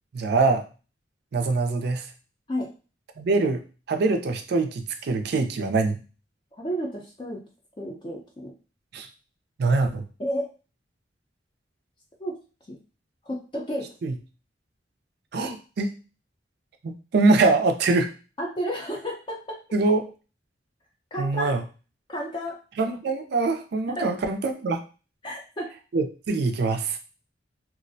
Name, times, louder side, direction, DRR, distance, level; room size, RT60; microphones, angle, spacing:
voice 1, 0.1-0.6 1.3-2.0 3.2-3.6 3.9-6.0 8.9-9.1 9.6-10.0 14.0-14.2 15.3-15.9 16.8-18.1 19.7-20.1 21.2-21.6 22.8-24.8 25.9-27.0, right 3 dB, 60° right, 6 dB, 0.4 m, -23 dB
voice 2, 6.5-7.4 7.8-8.5 10.2-10.5 12.2-12.4 12.7-12.8 13.2-13.9 18.4-19.6 21.1-21.6 22.1-22.6 23.9-24.1 25.2-25.8, equal, 25° left, -2 dB, 0.4 m, -32 dB
2.4 x 2.0 x 2.6 m, 0.33 s
head